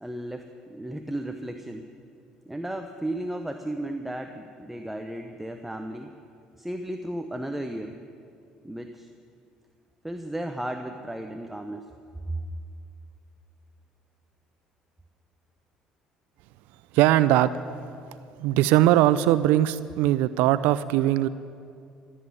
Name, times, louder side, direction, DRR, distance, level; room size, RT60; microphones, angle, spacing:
voice 1, 0.0-1.9 2.5-6.1 6.6-8.0 8.6-9.1 10.0-11.9 12.3-12.4, right 1 dB, 5° right, 6 dB, 0.9 m, -34 dB
voice 2, 16.9-17.5 18.4-21.3, right 14 dB, 70° right, 15 dB, 0.4 m, -20 dB
15.5 x 7.5 x 9.7 m, 2.4 s
hypercardioid pair, 60°, 3 cm